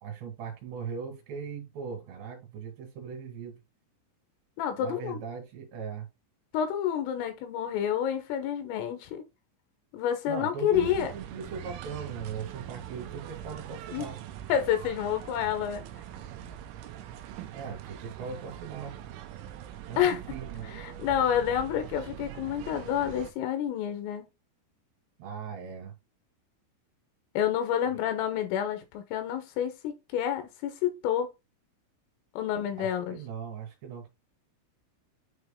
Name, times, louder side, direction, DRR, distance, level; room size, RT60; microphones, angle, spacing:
voice 1, 0.0-3.6 4.7-6.1 10.3-14.2 17.5-19.0 19.9-20.8 25.2-25.9 32.8-34.1, right 6 dB, 65° right, 3.8 m, -39 dB
voice 2, 4.6-5.2 6.5-9.2 9.9-11.1 13.9-14.1 14.5-15.9 20.0-20.2 20.7-24.3 27.4-31.3 32.4-33.2, left 9 dB, 80° left, 3.7 m, -29 dB
sound 1, 10.7-23.3, right 11 dB, 85° right, 3.1 m, -43 dB
9.4 x 3.2 x 3.7 m
omnidirectional pair, 5.8 m